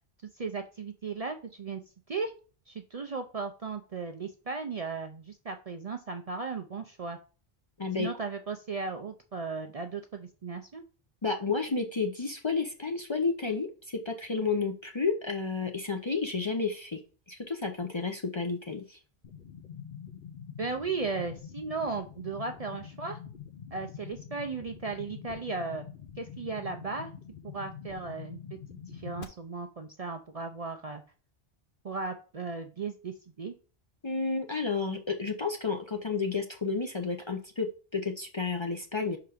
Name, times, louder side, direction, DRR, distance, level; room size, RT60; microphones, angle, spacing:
voice 1, 0.4-1.8 2.1-2.3 2.7-7.2 8.0-10.8 20.6-23.2 23.7-25.8 26.2-27.1 27.4-31.0 31.8-33.6, right 4 dB, 45° right, 6 dB, 0.5 m, -36 dB
voice 2, 11.2-17.0 17.3-19.0 34.0-39.2, left 4 dB, 35° left, 4 dB, 0.5 m, -31 dB
sound 1, 19.2-29.2, left 8 dB, 60° left, 0.9 m, -45 dB
5.7 x 3.9 x 4.9 m, 0.36 s
omnidirectional pair, 1.1 m